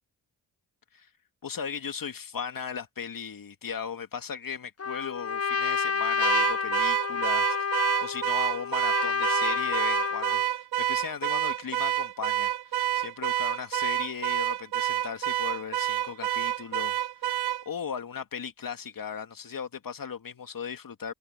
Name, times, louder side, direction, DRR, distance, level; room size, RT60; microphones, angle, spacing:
voice 1, 1.4-17.4 17.7-21.1, left 7 dB, 55° left, 2.3 m, -37 dB
Trumpet, 4.8-10.5, left 6 dB, 35° left, 1.5 m, -29 dB
Car / Alarm, 6.2-17.6, right 13 dB, 70° right, 0.9 m, -28 dB
supercardioid pair, 45°, 40 cm